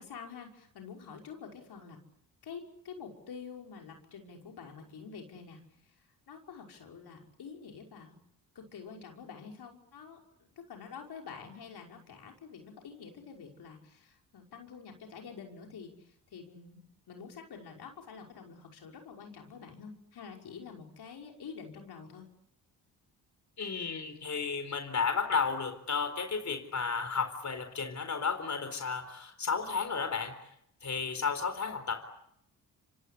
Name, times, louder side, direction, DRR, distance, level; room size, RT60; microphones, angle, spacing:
voice 1, 0.0-2.0 2.4-8.2 8.5-10.2 10.6-16.8 17.1-22.3, left 6 dB, 70° left, 2 dB, 5.7 m, -47 dB
voice 2, 23.6-30.3 30.8-32.0, left 5 dB, 45° left, 7 dB, 4.3 m, -33 dB
27.5 x 25.0 x 8.4 m, 0.76 s
supercardioid pair, 55°, 40 cm